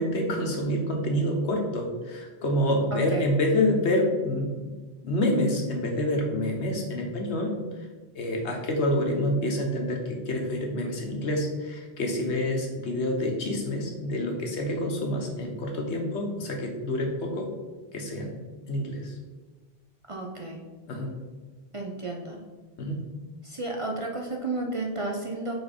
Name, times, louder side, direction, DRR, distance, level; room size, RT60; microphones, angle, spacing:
voice 1, 0.0-4.6 5.0-7.5 8.1-17.5 17.9-18.4 18.7-19.1 20.9-21.1 22.8-23.0, left 1 dB, 85° left, 1 dB, 1.4 m, -27 dB
voice 2, 2.9-3.2 20.1-20.6 21.7-22.4 23.4-25.5, right 2 dB, 40° right, 0 dB, 0.5 m, -32 dB
4.6 x 4.4 x 5.1 m, 1.3 s
omnidirectional pair, 1.1 m